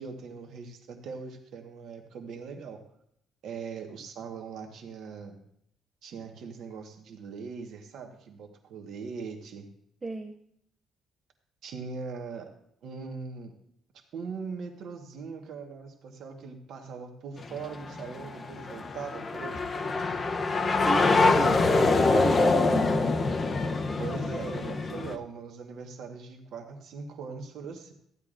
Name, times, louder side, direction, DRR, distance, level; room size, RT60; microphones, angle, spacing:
voice 1, 0.0-2.8 3.4-5.4 6.0-9.7 11.6-12.5 12.8-13.5 14.1-20.1 24.0-27.9, right 5 dB, 60° right, 4 dB, 1.2 m, -40 dB
voice 2, 10.0-10.3 20.8-22.9, right 2 dB, 20° right, 5 dB, 0.5 m, -33 dB
sound 1, 17.4-25.2, left 3 dB, 25° left, 0.6 m, -25 dB
15.0 x 10.5 x 2.5 m, 0.71 s
cardioid pair, 170°, 0 cm